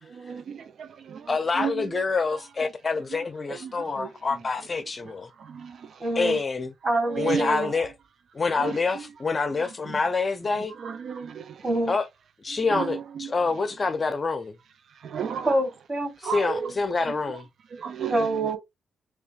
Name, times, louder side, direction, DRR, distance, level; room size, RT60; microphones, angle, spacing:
voice 1, 0.2-1.3 1.6-1.7 3.6-3.7 4.0-4.1 5.4-5.8 7.1-7.5 8.6-8.7 10.8-11.5 12.7-13.0 15.0-15.6 16.2-16.7 17.7-18.3, right 7 dB, 65° right, 0.3 m, -32 dB
voice 2, 1.3-5.3 6.2-6.7 7.2-7.9 8.3-10.7 11.9-12.1 12.4-14.5 16.2-17.5, left 4 dB, 35° left, 0.6 m, -26 dB
voice 3, 6.0-6.4 6.8-7.7 11.6-12.0 15.5-16.1 18.1-18.6, right 2 dB, 35° right, 2.2 m, -26 dB
6.7 x 2.3 x 2.4 m
cardioid pair, 75°, 0 cm